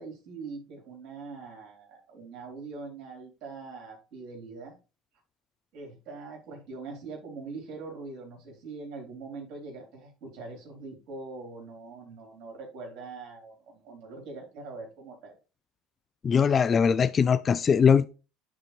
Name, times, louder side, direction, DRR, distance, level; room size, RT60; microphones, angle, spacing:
voice 1, 0.0-4.8 5.7-15.4, right 3 dB, 60° right, 3.6 m, -42 dB
voice 2, 16.2-18.1, left 6 dB, 35° left, 0.3 m, -21 dB
11.0 x 3.7 x 3.1 m
hypercardioid pair, 80°, 0 cm